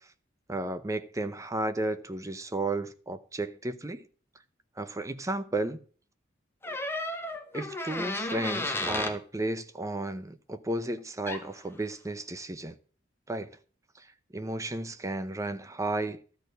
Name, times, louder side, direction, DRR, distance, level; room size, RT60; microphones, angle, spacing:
voice 1, 0.5-4.0 4.8-5.8 7.5-12.7 13.3-13.5 14.0-14.1 14.3-16.2, right 2 dB, 15° right, 0.6 m, -33 dB
sound 1, 6.6-9.2 11.3-11.5, left 2 dB, 10° left, 1.0 m, -33 dB
13.0 x 4.4 x 8.0 m
head